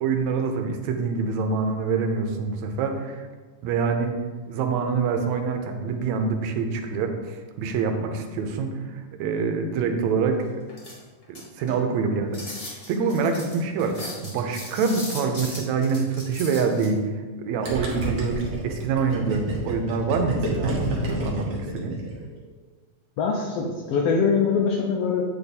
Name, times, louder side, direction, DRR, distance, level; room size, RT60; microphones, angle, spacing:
voice 1, 0.0-3.3 3.6-4.1 4.5-10.5 11.6-12.6 12.9-22.0, right 5 dB, 80° right, 5 dB, 1.9 m, -26 dB
sound 1, 10.7-11.8 12.3-16.9, left 1 dB, 30° left, 1.2 m, -38 dB
Gurgling, 17.6-22.3, right 1 dB, 60° right, 0.9 m, -29 dB
voice 2, 23.2-25.2, left 5 dB, 75° left, 0 dB, 1.5 m, -23 dB
8.4 x 3.5 x 4.1 m, 1.3 s
omnidirectional pair, 3.3 m